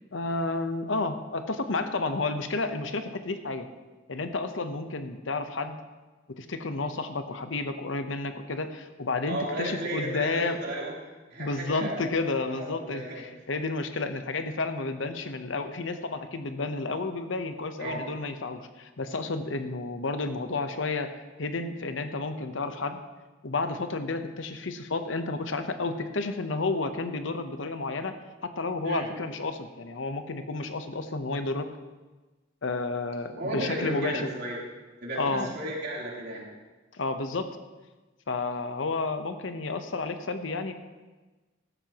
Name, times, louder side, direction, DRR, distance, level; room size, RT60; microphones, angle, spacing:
voice 1, 0.1-3.7 4.1-5.8 6.3-10.6 11.4-23.0 23.4-28.1 28.4-31.7 32.6-34.3 35.2-35.5 36.9-37.5 38.3-40.7, left 3 dB, 75° left, 8 dB, 0.9 m, -31 dB
voice 2, 9.3-10.9 11.3-12.1 12.5-13.2 17.8-18.0 28.8-29.1 33.3-34.6 35.0-36.4, right 1 dB, 60° right, -4 dB, 3.3 m, -34 dB
15.0 x 12.0 x 3.0 m, 1.2 s
head